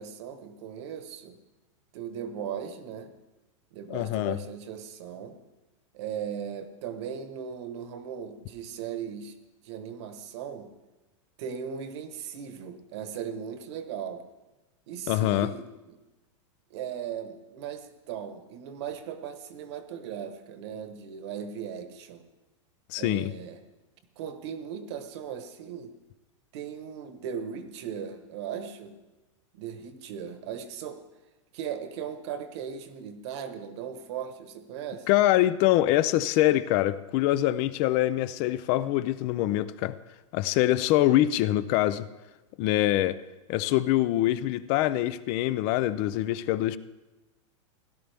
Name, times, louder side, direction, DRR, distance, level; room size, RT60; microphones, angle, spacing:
voice 1, 0.0-1.4 1.9-3.1 3.7-5.4 5.9-9.3 9.6-10.7 11.4-14.2 14.9-16.0 16.7-22.2 23.0-23.6 24.2-25.9 26.5-29.0 29.5-31.1 31.5-35.1, right 8 dB, 60° right, 1.3 m, -38 dB
voice 2, 3.9-4.4 15.1-15.5 22.9-23.3 35.1-40.0 40.3-42.1 42.6-43.2 43.5-46.8, left 14 dB, 40° left, 0.4 m, -24 dB
17.0 x 11.5 x 3.5 m
supercardioid pair, 155°, 16 cm